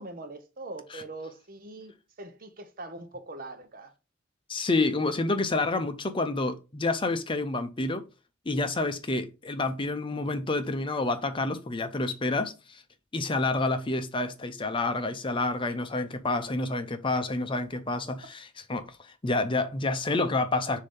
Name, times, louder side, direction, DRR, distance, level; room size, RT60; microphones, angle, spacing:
voice 1, 0.0-3.9, right 2 dB, 45° right, 0.9 m, -42 dB
voice 2, 4.5-8.0 8.5-12.8 13.1-19.0 19.2-20.8, left 2 dB, 25° left, 0.6 m, -28 dB
6.7 x 2.8 x 5.3 m
head